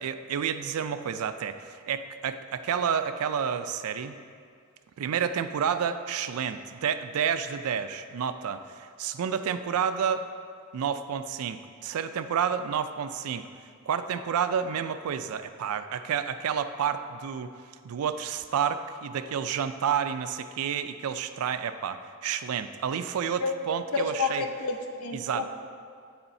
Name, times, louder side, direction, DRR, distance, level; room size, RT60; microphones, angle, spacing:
voice 1, 0.0-4.1 5.0-10.3 10.7-13.4 13.9-17.5 17.8-24.5 25.1-25.5, right 7 dB, 80° right, 11 dB, 0.4 m, -30 dB
voice 2, 24.0-25.5, left 4 dB, 70° left, 4 dB, 0.7 m, -30 dB
8.7 x 6.9 x 2.6 m, 2.2 s
head